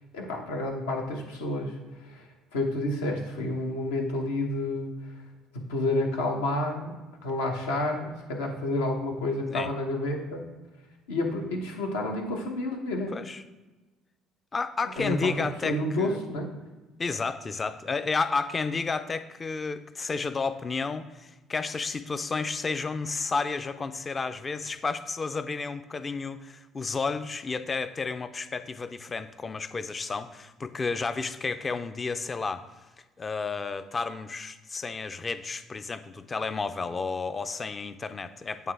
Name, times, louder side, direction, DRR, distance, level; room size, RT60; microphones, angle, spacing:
voice 1, 0.1-2.2 2.5-5.1 5.5-6.9 7.2-10.4 11.1-13.1 15.0-16.5, left 1 dB, 75° left, 1 dB, 1.0 m, -30 dB
voice 2, 13.1-13.4 14.5-16.2 17.0-32.7 33.2-38.7, left 4 dB, 30° left, 12 dB, 0.4 m, -31 dB
8.5 x 3.4 x 3.4 m, 1.2 s
figure-of-eight pair, 55°, 0 cm